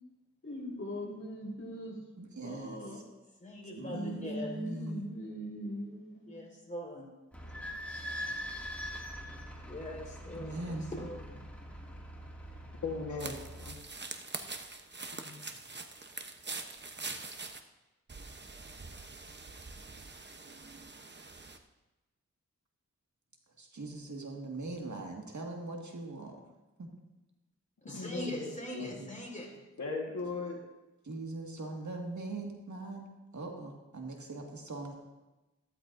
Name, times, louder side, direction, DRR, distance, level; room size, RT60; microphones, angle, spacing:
voice 1, 0.4-2.0 2.4-3.0 3.8-6.4, equal, 45° left, -3 dB, 4.3 m, -40 dB
voice 2, 2.2-3.0 3.7-5.1 10.4-10.9 23.6-26.4 26.8-26.9 29.0-29.1 31.0-33.1 33.3-34.9, right 2 dB, 70° right, 1 dB, 1.9 m, -41 dB
voice 3, 3.4-4.5 6.3-7.1 9.7-11.4 27.8-29.5, left 1 dB, 25° left, -2 dB, 4.6 m, -42 dB
Idling / Squeak, 7.3-13.7, equal, 5° left, 2.3 m, -43 dB
voice 4, 12.8-13.3 13.7-13.8 15.1-15.5 27.9-29.0 29.8-30.6, left 3 dB, 70° left, -2 dB, 1.6 m, -38 dB
sound 1, 13.2-17.6 18.1-21.6, right 3 dB, 35° right, 0.9 m, -44 dB
14.5 x 13.0 x 2.7 m, 1.1 s
cardioid pair, 55°, 30 cm